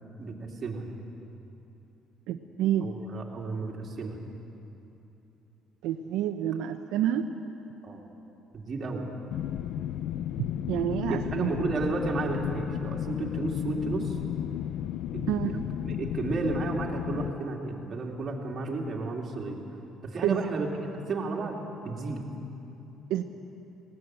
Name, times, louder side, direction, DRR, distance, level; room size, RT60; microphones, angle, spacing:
voice 1, 0.2-0.9 2.8-4.2 7.8-8.0 8.5-9.1 11.1-14.2 15.1-19.6 20.0-20.7 21.1-21.6 21.8-22.2, right 3 dB, 35° right, -1 dB, 2.8 m, -32 dB
voice 2, 2.3-2.9 5.8-7.3 10.4-11.5 15.3-15.5 20.2-20.4 23.1-23.2, right 11 dB, 80° right, 5 dB, 0.8 m, -28 dB
sound 1, 9.3-17.3, left 11 dB, 70° left, 0.4 m, -33 dB
19.0 x 18.0 x 7.9 m, 3.0 s
cardioid pair, 130°, 0 cm